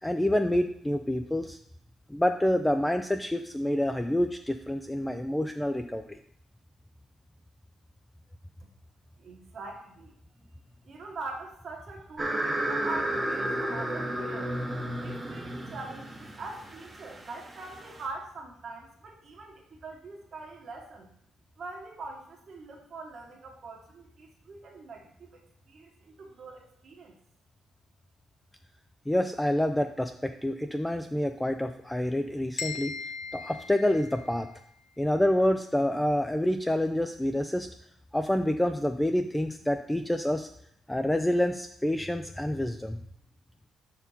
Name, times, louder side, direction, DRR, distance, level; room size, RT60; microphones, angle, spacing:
voice 1, 0.0-1.6 2.1-6.2 29.1-33.0 33.3-34.5 35.0-37.7 38.1-40.5 40.9-43.0, left 1 dB, 5° left, 6 dB, 0.4 m, -27 dB
voice 2, 9.2-10.1 10.8-14.5 15.0-21.1 21.6-25.4 25.7-27.2, right 3 dB, 55° right, 0 dB, 1.3 m, -43 dB
sound 1, 12.2-18.0, right 1 dB, 20° right, 0.9 m, -32 dB
sound 2, 32.6-34.6, left 5 dB, 70° left, 1.0 m, -39 dB
5.7 x 4.4 x 5.4 m, 0.70 s
cardioid pair, 90°, 0 cm